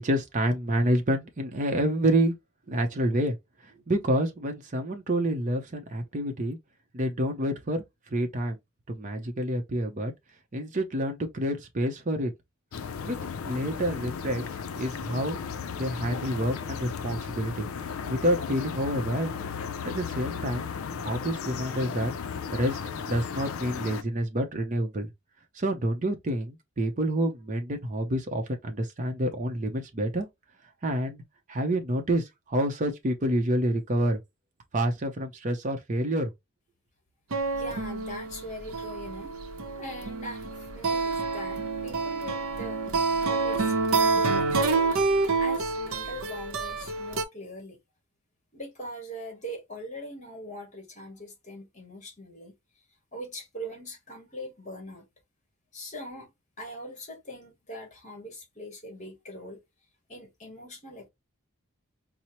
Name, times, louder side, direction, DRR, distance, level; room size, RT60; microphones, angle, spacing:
voice 1, 0.0-2.3 2.7-3.4 3.9-6.6 6.9-7.8 8.1-8.6 8.9-10.1 10.5-12.3 13.0-13.2 13.4-14.4 14.8-15.4 15.7-17.7 18.1-19.3 19.8-20.7 21.0-22.1 22.5-25.1 25.5-30.3 30.8-31.2 31.5-34.2 34.7-36.3, right 1 dB, 35° right, 0.6 m, -28 dB
sound 1, 12.7-24.0, left 6 dB, 70° left, 0.4 m, -35 dB
sound 2, 37.3-47.2, right 3 dB, 70° right, 0.6 m, -28 dB
voice 2, 37.5-39.4 39.8-42.8 43.2-44.8 45.4-47.8 48.5-52.6 53.1-55.1 55.7-56.3 56.6-59.6 60.1-61.1, equal, 35° left, 1.3 m, -41 dB
4.3 x 2.0 x 2.9 m
head